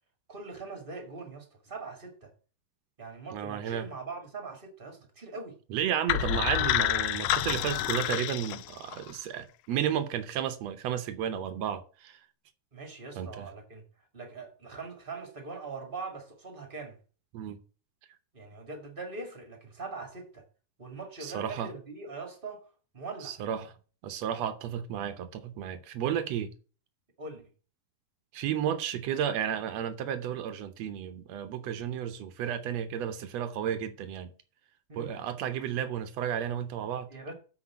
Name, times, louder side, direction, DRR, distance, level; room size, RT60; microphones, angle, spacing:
voice 1, 0.3-2.3 3.0-5.6 12.7-13.8 14.1-17.0 18.3-20.4 20.8-22.6 22.9-23.4 27.2-27.4 34.9-35.2 37.1-37.3, right 3 dB, 25° right, 1.3 m, -42 dB
voice 2, 3.3-3.8 5.7-12.2 13.2-13.5 17.3-17.6 21.2-21.7 23.2-23.7 24.0-26.5 28.3-34.3 34.9-37.1, right 9 dB, 80° right, 1.5 m, -32 dB
sound 1, 6.1-9.1, left 13 dB, 80° left, 1.9 m, -28 dB
8.5 x 4.7 x 7.3 m
omnidirectional pair, 4.1 m